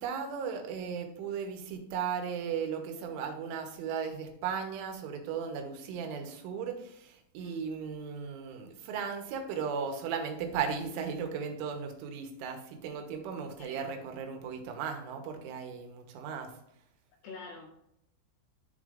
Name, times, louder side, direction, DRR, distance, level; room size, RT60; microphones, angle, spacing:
voice 1, 0.0-16.5, right 6 dB, 80° right, 4 dB, 3.4 m, -36 dB
voice 2, 17.2-17.8, left 4 dB, 85° left, 0 dB, 2.3 m, -46 dB
13.0 x 4.4 x 2.5 m, 0.75 s
omnidirectional pair, 5.5 m